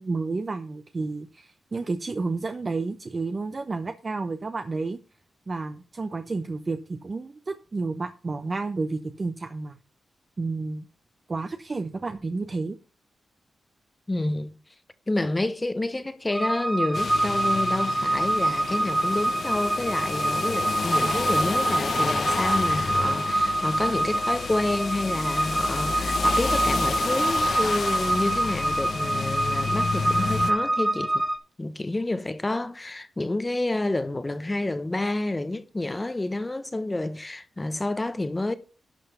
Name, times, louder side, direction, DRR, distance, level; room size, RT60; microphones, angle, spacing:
voice 1, 0.0-5.0 5.5-9.8 10.4-10.9 11.3-12.8, right 3 dB, 35° right, 0.8 m, -31 dB
voice 2, 14.1-14.6 15.1-31.2 31.6-38.5, left 2 dB, 20° left, 0.9 m, -29 dB
sound 1, 16.3-31.4, right 1 dB, 10° right, 2.2 m, -26 dB
sound 2, 16.9-30.5, left 5 dB, 60° left, 0.9 m, -31 dB
11.5 x 5.7 x 5.6 m
cardioid pair, 90°, 0 cm